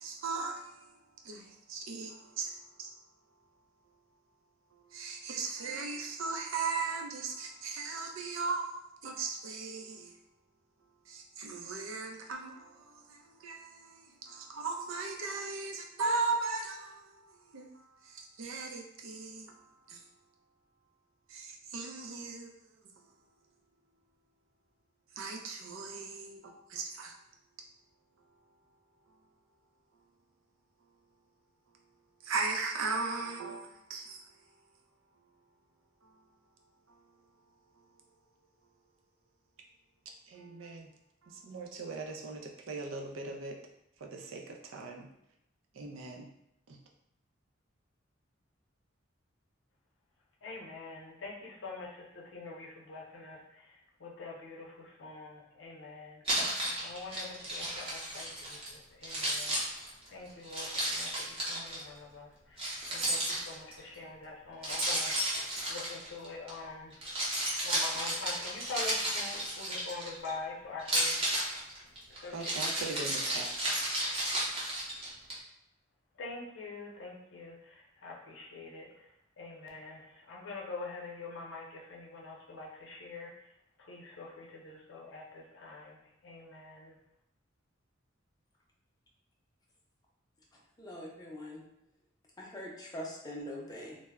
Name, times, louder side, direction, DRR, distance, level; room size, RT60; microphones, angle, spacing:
voice 1, 0.0-3.0 4.7-10.2 11.0-20.1 21.3-23.2 25.1-27.2 28.2-28.4 29.1-29.2 32.2-34.6 35.1-35.2 36.0-36.2 36.9-37.2 37.8-37.9 40.3-40.9 41.2-43.6 44.0-45.1 45.7-46.3 46.7-46.8 72.3-73.5, right 4 dB, 85° right, 2 dB, 0.4 m, -38 dB
voice 2, 50.4-56.5 56.8-65.4 65.7-67.0 67.6-71.6 72.1-73.0 76.1-83.5 83.8-87.0, left 3 dB, 70° left, -2 dB, 0.6 m, -45 dB
Keys jangling, 56.3-58.7 59.0-61.8 62.6-63.8 64.6-66.5 66.9-70.3 70.8-75.3, right 1 dB, 30° right, 0.6 m, -33 dB
voice 3, 90.5-91.6 92.4-94.0, equal, 20° left, -2 dB, 0.5 m, -43 dB
2.1 x 2.0 x 3.4 m, 0.81 s
head